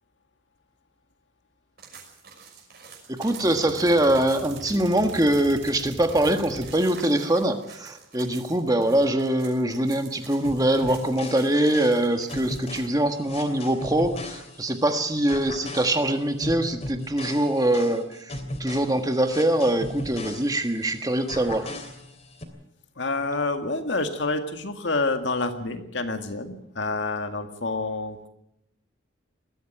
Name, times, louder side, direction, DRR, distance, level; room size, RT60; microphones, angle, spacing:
sound 1, 1.8-12.9, right 6 dB, 50° right, 6.0 m, -48 dB
voice 1, 3.1-21.7, right 1 dB, 20° right, 6 dB, 1.4 m, -23 dB
sound 2, 3.2-7.7, right 3 dB, 65° right, 1.9 m, -43 dB
sound 3, 10.4-14.9 15.3-20.9 21.3-22.4, left 1 dB, 30° left, 3.0 m, -37 dB
voice 2, 23.0-28.3, left 3 dB, 60° left, 6 dB, 2.0 m, -28 dB
21.0 x 14.5 x 9.1 m, 0.80 s
head